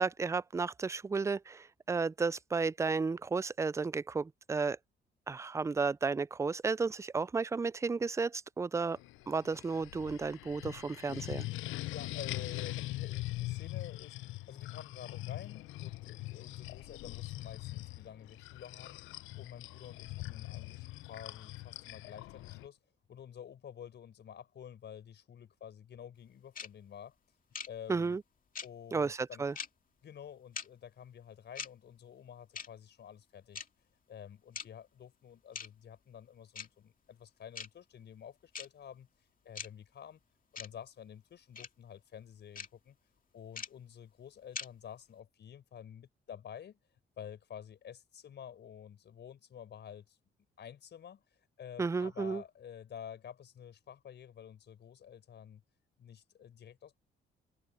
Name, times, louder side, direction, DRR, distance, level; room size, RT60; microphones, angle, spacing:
voice 1, 0.0-4.8 5.3-9.0 9.3-11.4 27.9-28.2 28.9-29.5 51.8-52.4, right 4 dB, 15° right, 0.3 m, -33 dB
sound 1, 8.9-22.7, left 18 dB, 90° left, 0.6 m, -42 dB
voice 2, 11.9-19.0 19.3-22.8 23.1-27.1 27.7-28.2 28.6-29.4 30.0-33.7 34.1-39.1 39.4-40.2 40.5-42.9 43.3-46.8 47.2-50.2 50.6-51.2 51.6-55.6 56.0-57.0, left 9 dB, 60° left, 5.0 m, -50 dB
sound 2, 26.6-26.7 27.5-27.7 28.6-28.7 29.6-29.7 30.6-30.7 31.6-31.7 32.6-32.7 33.6-33.7 34.6-34.7 35.6-35.7 36.6-36.7 37.6-37.7 38.5-38.7 39.6-39.7 40.6-40.7 41.6-41.7 42.6-42.7 43.6-43.7 44.6-44.7, left 6 dB, 45° left, 2.2 m, -40 dB
cardioid pair, 90°, 20 cm